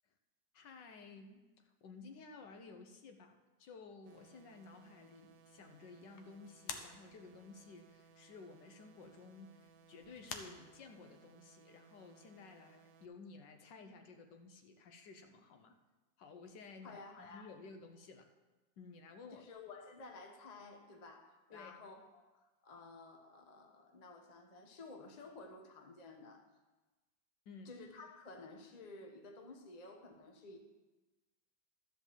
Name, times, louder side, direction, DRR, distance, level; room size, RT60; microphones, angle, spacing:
voice 1, 0.5-15.8 16.2-18.3 18.8-19.4 21.5-21.7 27.5-27.7, left 4 dB, 70° left, 6 dB, 1.4 m, -55 dB
sound 1, 4.0-11.3, left 6 dB, 90° left, 1.7 m, -54 dB
sound 2, 4.1-13.1, right 6 dB, 70° right, 1.4 m, -64 dB
voice 2, 16.8-17.5 19.3-22.3 22.6-26.4 27.6-30.6, left 3 dB, 30° left, 4 dB, 0.8 m, -53 dB
12.5 x 5.1 x 7.3 m, 1.2 s
omnidirectional pair, 2.1 m